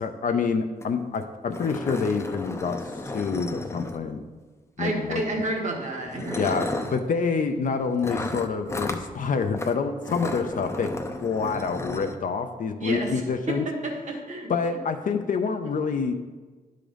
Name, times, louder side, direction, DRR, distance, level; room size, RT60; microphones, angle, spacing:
voice 1, 0.0-2.8 3.1-4.2 4.8-5.2 6.3-10.9 11.2-13.7 14.5-16.1, left 5 dB, 60° left, 6 dB, 0.6 m, -27 dB
sound 1, 0.8-0.9 1.1-1.2 1.5-4.3 5.3-5.5 6.0-7.0 8.0-9.1 9.5-9.7 10.0-12.2, left 2 dB, 20° left, 0.6 m, -33 dB
voice 2, 4.8-6.5 12.8-13.2 13.5-14.8, right 2 dB, 50° right, 0 dB, 1.5 m, -30 dB
11.0 x 3.8 x 5.1 m, 1.3 s
wide cardioid pair, 115°, 15 cm